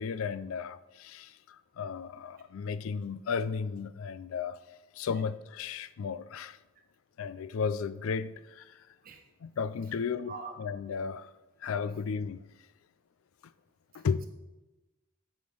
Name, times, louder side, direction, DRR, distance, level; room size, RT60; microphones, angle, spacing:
voice 1, 0.0-4.6 4.9-6.6 7.2-8.8 9.4-11.3 11.6-12.5 13.9-14.3, left 6 dB, 85° left, 0.4 m, -34 dB
voice 2, 13.9-14.3, right 5 dB, 45° right, 1.0 m, -44 dB
8.0 x 5.0 x 5.4 m
head